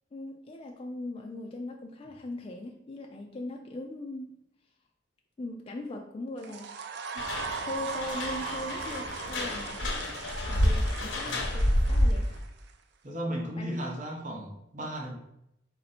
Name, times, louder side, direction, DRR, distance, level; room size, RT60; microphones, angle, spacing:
voice 1, 0.1-4.3 5.4-6.8 7.1-7.3 7.6-12.3 13.6-13.8, left 2 dB, 30° left, 1 dB, 0.3 m, -40 dB
sound 1, 6.4-12.7, right 6 dB, 60° right, 0.4 m, -39 dB
sound 2, 7.2-12.4, left 1 dB, 80° left, 0.8 m, -29 dB
voice 2, 13.0-15.1, equal, 45° right, -2 dB, 1.0 m, -35 dB
4.2 x 2.6 x 4.2 m, 0.81 s
head